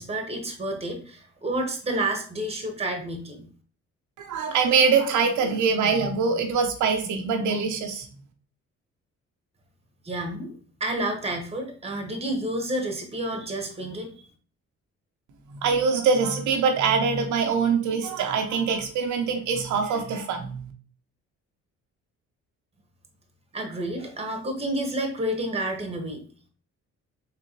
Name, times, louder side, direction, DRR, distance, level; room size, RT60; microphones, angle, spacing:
voice 1, 0.0-3.5 10.0-10.5 10.8-14.1 23.5-26.2, right 1 dB, 20° right, 3 dB, 1.0 m, -30 dB
voice 2, 4.2-8.1 15.5-20.7, right 5 dB, 75° right, 4 dB, 0.7 m, -23 dB
3.8 x 3.3 x 2.9 m, 0.43 s
cardioid pair, 90°, 30 cm